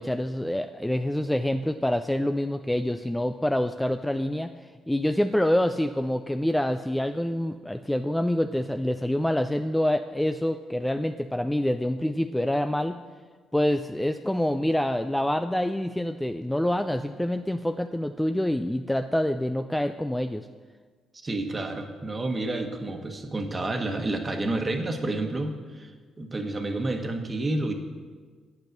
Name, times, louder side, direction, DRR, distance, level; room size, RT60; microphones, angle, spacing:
voice 1, 0.0-4.5 4.9-13.0 13.5-20.5, left 1 dB, 5° left, 8 dB, 0.3 m, -26 dB
voice 2, 21.2-25.9 26.2-27.7, right 2 dB, 25° right, 4 dB, 1.3 m, -29 dB
8.9 x 8.0 x 6.5 m, 1.5 s
cardioid pair, 90°, 0 cm